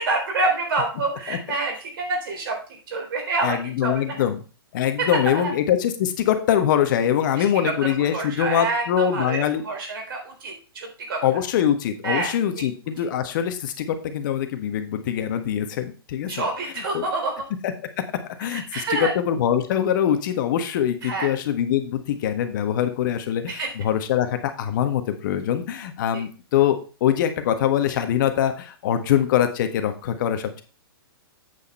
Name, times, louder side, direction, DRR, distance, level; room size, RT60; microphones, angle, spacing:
voice 1, 0.0-4.1 5.0-5.1 5.4-5.5 7.4-11.4 12.0-12.6 16.3-17.3 18.4-19.1 21.0-21.3 23.5-23.7, right 3 dB, 65° right, 3 dB, 3.8 m, -27 dB
voice 2, 3.4-4.4 4.7-9.6 11.2-16.4 16.9-17.0 17.6-17.7 18.4-30.6, left 10 dB, 55° left, 8 dB, 1.5 m, -23 dB
8.4 x 6.5 x 4.4 m, 0.36 s
hypercardioid pair, 120°, 13 cm